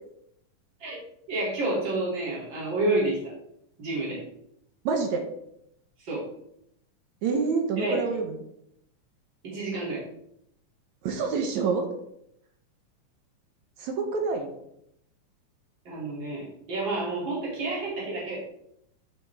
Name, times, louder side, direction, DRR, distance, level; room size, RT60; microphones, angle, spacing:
voice 1, 1.3-3.3 3.8-4.2 6.0-6.3 7.8-8.0 9.4-10.0 15.8-18.4, right 2 dB, 35° right, -6 dB, 3.3 m, -29 dB
voice 2, 4.9-5.3 7.2-8.4 11.0-11.8 13.8-14.5, right 4 dB, 70° right, 4 dB, 2.0 m, -27 dB
9.6 x 5.8 x 3.5 m, 0.76 s
omnidirectional pair, 3.7 m